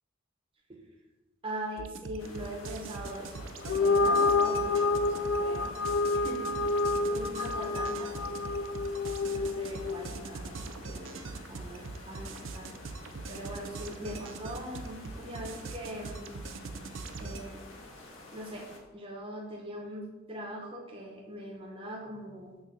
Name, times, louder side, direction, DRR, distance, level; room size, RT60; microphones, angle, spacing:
voice 1, 1.4-3.5 3.8-5.8 6.1-8.6 9.3-12.7 13.3-16.3 17.2-17.7 18.3-22.5, right 1 dB, 30° right, -2 dB, 0.9 m, -41 dB
sound 1, 1.8-17.4, right 3 dB, 75° right, 0.5 m, -42 dB
sound 2, 2.2-18.8, left 2 dB, 85° left, 1.5 m, -50 dB
sound 3, 3.6-10.2, left 3 dB, 65° left, 0.4 m, -28 dB
6.3 x 3.8 x 6.3 m, 1.1 s
head